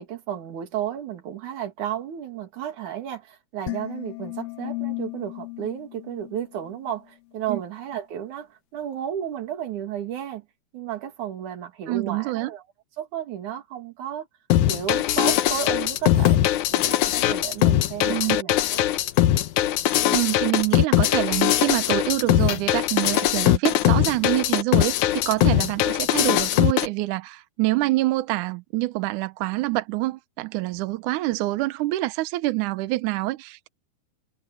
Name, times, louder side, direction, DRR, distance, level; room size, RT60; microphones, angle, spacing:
voice 1, 0.0-10.4 10.7-12.6 13.0-14.3 14.7-16.4 16.7-18.8, right 10 dB, 55° right, 3.2 m, -33 dB
sound 1, 3.7-7.0, left 20 dB, 85° left, 3.5 m, -35 dB
voice 2, 11.9-12.5 18.0-18.4 20.1-33.7, right 18 dB, 80° right, 1.8 m, -26 dB
sound 2, 14.5-26.9, left 13 dB, 70° left, 1.9 m, -21 dB
omnidirectional pair, 4.5 m